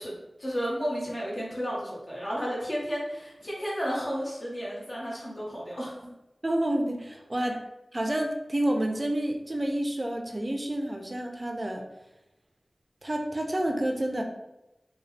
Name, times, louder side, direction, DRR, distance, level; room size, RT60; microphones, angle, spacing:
voice 1, 0.0-5.9, equal, 40° left, -5 dB, 1.4 m, -32 dB
voice 2, 6.4-7.6 7.9-11.8 13.0-14.2, right 1 dB, 30° right, 3 dB, 0.5 m, -29 dB
4.0 x 2.3 x 3.3 m, 0.93 s
wide cardioid pair, 60°, 0 cm